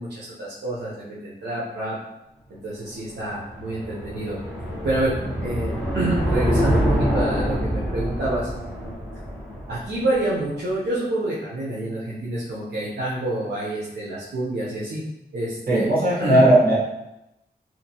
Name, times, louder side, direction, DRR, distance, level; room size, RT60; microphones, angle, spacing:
voice 1, 0.0-2.0 2.5-4.4 4.8-5.1 5.4-5.7 5.9-8.5 9.7-15.0 15.3-15.9 16.2-16.4, right 1 dB, 80° right, -7 dB, 0.6 m, -27 dB
sound 1, 2.9-10.2, equal, ahead, 1.4 m, -26 dB
voice 2, 15.7-16.7, right 1 dB, 55° right, -6 dB, 1.1 m, -17 dB
2.8 x 2.5 x 2.7 m, 0.90 s
wide cardioid pair, 115°, 18 cm